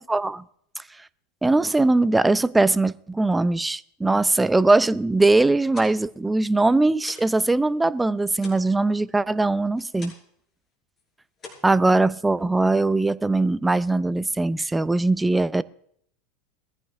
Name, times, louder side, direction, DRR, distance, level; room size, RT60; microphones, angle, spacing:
voice 1, 0.1-0.4 1.4-10.1 11.6-15.6, right 2 dB, 10° right, 0.5 m, -21 dB
sound 1, 5.5-7.4 7.7-10.4 10.7-11.0 11.3-12.4, left 4 dB, 30° left, 6.0 m, -46 dB
22.0 x 15.0 x 2.6 m
figure-of-eight pair, 80°, 0 cm